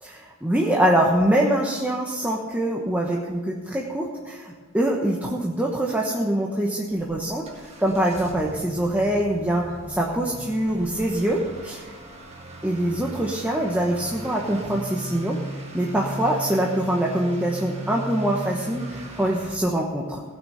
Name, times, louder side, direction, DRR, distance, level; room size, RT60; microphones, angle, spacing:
voice 1, 0.0-11.8 12.6-15.4 15.7-20.2, right 1 dB, 5° right, -2 dB, 1.1 m, -24 dB
Motor vehicle (road) / Accelerating revving vroom, 7.0-19.6, right 2 dB, 30° right, 1.7 m, -38 dB
16.5 x 6.4 x 6.8 m, 1.5 s
head